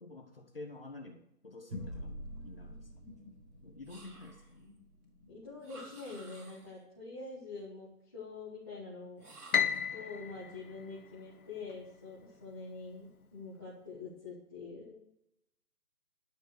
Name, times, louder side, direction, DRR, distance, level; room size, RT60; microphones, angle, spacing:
voice 1, 0.0-2.9 3.6-4.7, left 2 dB, 40° left, 3 dB, 1.3 m, -49 dB
sound 1, 1.7-6.5, equal, 20° right, 4.4 m, -48 dB
sound 2, 3.8-4.6 5.6-6.8 9.2-9.9, right 2 dB, 70° right, 3.0 m, -54 dB
voice 2, 5.3-9.3 9.9-15.0, left 4 dB, 15° left, -10 dB, 1.6 m, -45 dB
Piano, 9.5-11.8, left 7 dB, 65° left, 0.9 m, -34 dB
12.0 x 6.2 x 6.7 m, 0.81 s
hypercardioid pair, 180°, 46 cm